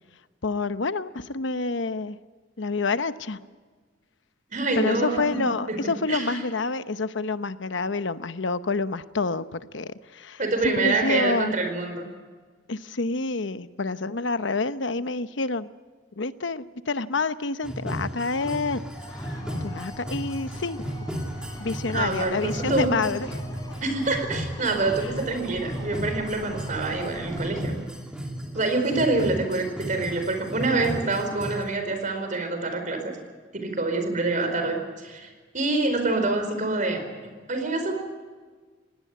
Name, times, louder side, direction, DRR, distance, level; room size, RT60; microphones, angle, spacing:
voice 1, 0.4-2.2 2.6-3.4 4.8-11.5 12.7-15.7 16.2-18.9 19.1-20.9 21.6-23.3, left 3 dB, 75° left, 12 dB, 0.9 m, -28 dB
voice 2, 4.5-5.4 5.7-6.4 10.4-12.1 21.9-22.9 23.8-27.8 28.5-33.2 33.5-35.3 35.5-37.0 37.5-37.9, right 3 dB, 45° right, 6 dB, 4.6 m, -26 dB
sound 1, 17.6-31.6, equal, 5° right, 2.8 m, -35 dB
sound 2, 18.9-27.6, equal, 20° left, 3.6 m, -40 dB
20.5 x 18.0 x 9.4 m, 1.5 s
head